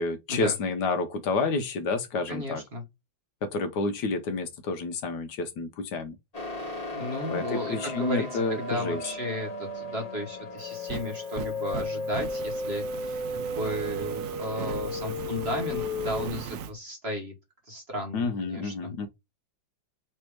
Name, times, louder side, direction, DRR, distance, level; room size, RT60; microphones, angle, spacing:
voice 1, 0.0-2.6 3.4-6.1 7.3-9.0 18.1-19.1, left 3 dB, 70° left, 1.3 m, -29 dB
voice 2, 2.3-2.8 6.9-17.3 17.7-18.9, equal, 40° right, 1.2 m, -34 dB
sound 1, 6.3-16.3, left 2 dB, 25° left, 1.0 m, -34 dB
Fire, 10.6-16.7, right 8 dB, 80° right, 0.7 m, -39 dB
3.4 x 3.3 x 4.5 m
omnidirectional pair, 2.0 m